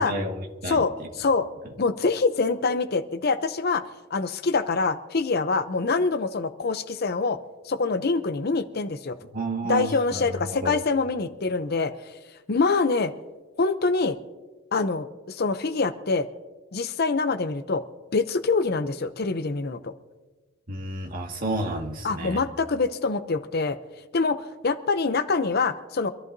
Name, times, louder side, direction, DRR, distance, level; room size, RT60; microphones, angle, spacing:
voice 1, 0.0-1.1 9.3-10.8 20.7-22.4, right 2 dB, 45° right, 0 dB, 1.9 m, -31 dB
voice 2, 0.7-1.5 1.8-3.8 4.1-7.4 7.6-9.2 9.7-11.9 12.5-13.1 13.6-14.2 14.7-16.3 16.7-17.8 18.1-19.9 22.0-23.8 24.1-26.1, left 4 dB, 50° left, 10 dB, 0.6 m, -25 dB
25.5 x 14.0 x 2.7 m, 1.2 s
head